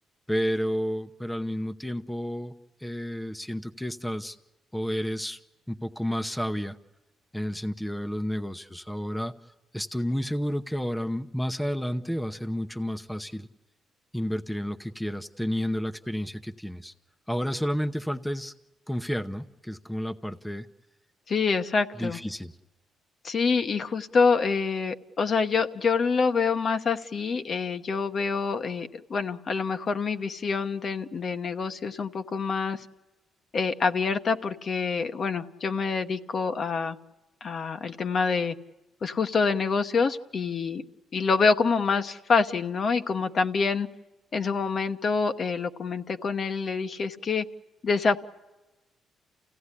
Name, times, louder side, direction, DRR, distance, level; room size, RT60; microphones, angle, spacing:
voice 1, 0.3-2.5 2.8-4.4 4.7-5.4 5.7-6.8 7.3-9.3 9.7-13.5 14.1-16.9 17.3-18.5 18.9-20.7 22.0-22.5, equal, 5° left, 8 dB, 0.8 m, -31 dB
voice 2, 21.3-22.2 23.2-32.8 33.5-37.0 37.4-38.6 39.0-40.8 41.1-43.9 44.3-47.4 47.8-48.2, left 5 dB, 50° left, 8 dB, 1.1 m, -26 dB
28.5 x 16.5 x 9.8 m, 1.1 s
cardioid pair, 90°, 0 cm